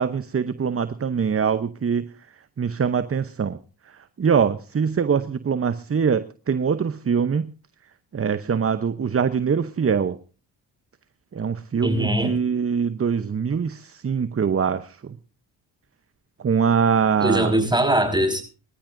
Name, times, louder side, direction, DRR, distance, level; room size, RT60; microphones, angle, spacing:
voice 1, 0.0-2.0 2.6-3.6 4.2-7.5 8.1-10.2 11.3-15.2 16.4-17.5, right 6 dB, 30° right, 0.8 m, -23 dB
voice 2, 11.8-12.4 17.2-18.4, right 1 dB, 10° right, 5.5 m, -21 dB
24.0 x 13.5 x 2.6 m
supercardioid pair, 55°, 47 cm